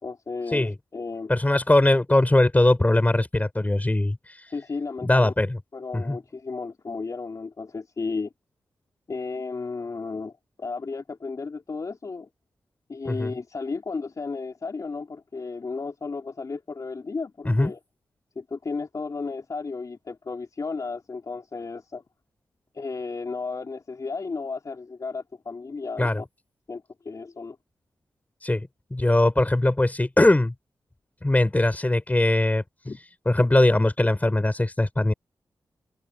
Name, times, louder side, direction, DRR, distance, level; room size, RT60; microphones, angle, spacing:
voice 1, 0.0-1.3 4.5-5.3 5.7-8.3 9.1-12.3 12.9-17.8 18.4-22.0 22.7-26.3 26.7-27.6 32.9-33.0, left 4 dB, 50° left, 3.5 m, -33 dB
voice 2, 1.3-4.4 5.0-5.6 5.9-6.2 13.0-13.3 17.4-17.7 26.0-26.2 28.4-30.5 31.2-32.6 33.3-35.1, left 1 dB, 20° left, 5.9 m, -21 dB
cardioid pair, 50°, 7 cm